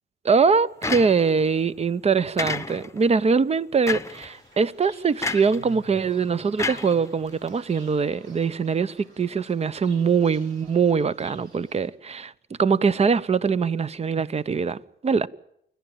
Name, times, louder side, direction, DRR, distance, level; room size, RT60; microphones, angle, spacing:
voice 1, 0.2-12.3 12.6-15.3, right 5 dB, 30° right, 0.8 m, -22 dB
sound 1, 0.8-1.5 2.4-3.0 3.9-4.3 5.2-5.6 6.6-7.5, left 3 dB, 15° left, 0.9 m, -30 dB
Fowl / Bird, 4.0-11.9, right 4 dB, 85° right, 7.6 m, -51 dB
28.0 x 11.5 x 8.9 m
cardioid pair, 90°, 20 cm